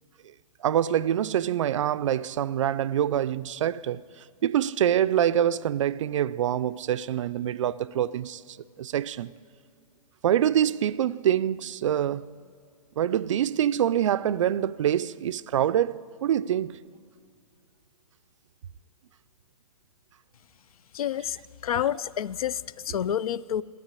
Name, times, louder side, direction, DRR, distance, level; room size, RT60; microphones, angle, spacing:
voice 1, 0.6-4.0 4.4-8.4 8.8-9.3 10.2-12.3 13.0-16.8 22.9-23.0, right 10 dB, 60° right, 0.4 m, -25 dB
voice 2, 20.9-21.4 21.6-23.6, left 10 dB, 80° left, 0.4 m, -28 dB
13.5 x 9.0 x 8.9 m
hypercardioid pair, 165°, 18 cm